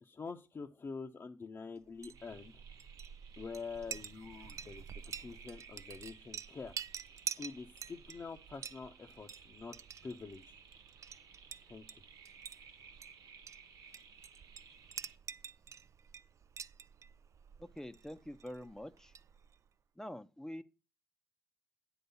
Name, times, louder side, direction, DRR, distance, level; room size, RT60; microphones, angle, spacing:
voice 1, 0.0-2.6 3.4-4.8 5.2-6.7 7.3-9.8 10.0-10.6 11.7-12.0, left 4 dB, 40° left, 0.8 m, -46 dB
Chink clink, 1.9-19.7, right 7 dB, 55° right, 0.4 m, -48 dB
sound 1, 2.1-15.2, right 6 dB, 75° right, 1.1 m, -58 dB
voice 2, 17.6-19.1 20.0-20.6, left 1 dB, 10° left, 0.6 m, -46 dB
9.2 x 4.0 x 6.9 m
cardioid pair, 70°, 6 cm